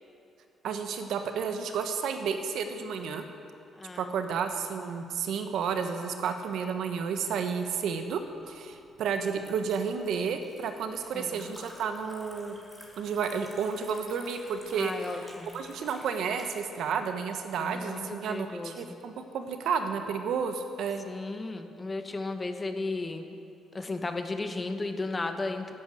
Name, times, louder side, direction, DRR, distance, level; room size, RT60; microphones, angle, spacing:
voice 1, 0.6-3.2 4.0-8.2 8.5-12.6 13.0-14.9 15.5-21.0, right 6 dB, 75° right, 7 dB, 1.1 m, -31 dB
voice 2, 3.8-4.1 11.1-11.5 14.7-15.6 17.6-18.8 21.1-23.4 23.7-25.7, left 3 dB, 25° left, 7 dB, 1.1 m, -35 dB
Liquid, 8.1-16.4, equal, ahead, 3.1 m, -52 dB
11.5 x 8.5 x 8.3 m, 2.5 s
cardioid pair, 90°, 0 cm